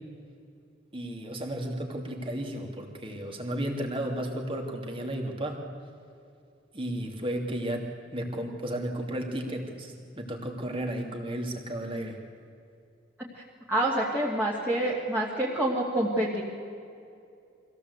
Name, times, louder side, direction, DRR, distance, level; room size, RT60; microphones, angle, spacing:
voice 1, 0.9-5.6 6.7-7.9 8.1-12.2, right 1 dB, 25° right, 2 dB, 2.9 m, -33 dB
voice 2, 13.7-16.4, right 1 dB, 10° right, -6 dB, 2.7 m, -27 dB
24.5 x 16.5 x 8.3 m, 2.5 s
head